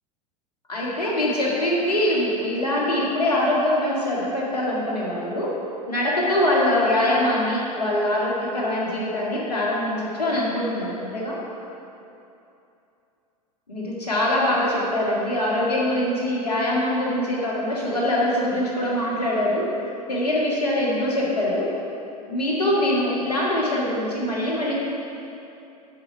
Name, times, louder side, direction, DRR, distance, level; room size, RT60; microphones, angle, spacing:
voice 1, 0.7-5.5 5.9-11.4 13.7-19.7 20.1-21.7 22.3-24.7, left 1 dB, 80° left, -5 dB, 1.9 m, -23 dB
7.4 x 5.2 x 5.6 m, 2.7 s
figure-of-eight pair, 85°, 20 cm